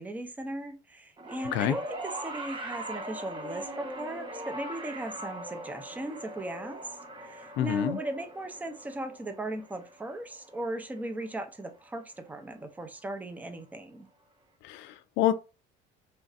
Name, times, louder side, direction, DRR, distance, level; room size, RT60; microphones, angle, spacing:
voice 1, 0.0-6.8 7.2-14.1, right 1 dB, 10° right, 0.5 m, -37 dB
sound 1, 1.2-11.6 12.6-12.7, right 1 dB, 25° right, 0.8 m, -41 dB
voice 2, 7.6-8.0 14.6-15.3, left 12 dB, 70° left, 0.4 m, -27 dB
3.1 x 2.6 x 2.4 m
cardioid pair, 110°, 20 cm